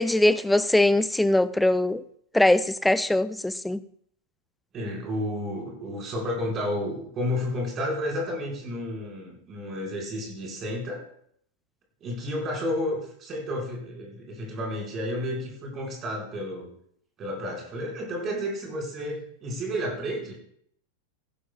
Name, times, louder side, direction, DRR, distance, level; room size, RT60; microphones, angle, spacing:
voice 1, 0.0-2.0 2.3-3.8, left 1 dB, 5° left, 0.3 m, -21 dB
voice 2, 4.7-11.0 12.0-16.7 17.2-20.3, left 1 dB, 30° right, 4.6 m, -31 dB
17.5 x 11.0 x 2.3 m
figure-of-eight pair, 90°, 0 cm